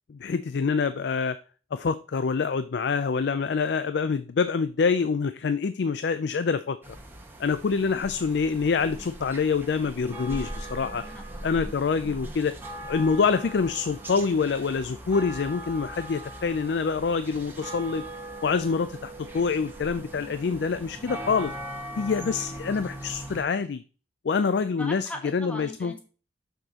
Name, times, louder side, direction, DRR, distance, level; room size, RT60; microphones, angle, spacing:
voice 1, 0.1-1.3 1.7-7.0 7.4-11.0 11.4-12.5 12.8-18.0 18.4-21.5 22.0-23.8 24.2-25.9, left 5 dB, 65° left, 12 dB, 0.4 m, -26 dB
sound 1, 6.8-23.4, right 1 dB, 10° right, 1.1 m, -40 dB
voice 2, 8.8-9.1 10.9-11.4 24.8-26.0, left 1 dB, 10° left, 3 dB, 1.2 m, -40 dB
6.8 x 6.4 x 2.9 m, 0.36 s
head